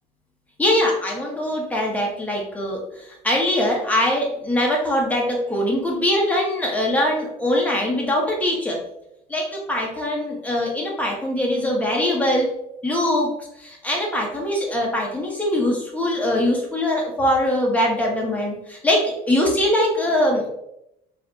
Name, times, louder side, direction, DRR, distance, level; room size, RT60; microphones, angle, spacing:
voice 1, 0.6-8.8 9.3-12.5 12.8-13.3 13.6-20.5, left 1 dB, 10° left, -2 dB, 1.5 m, -22 dB
4.8 x 3.5 x 2.9 m, 0.80 s
cardioid pair, 110°, 17 cm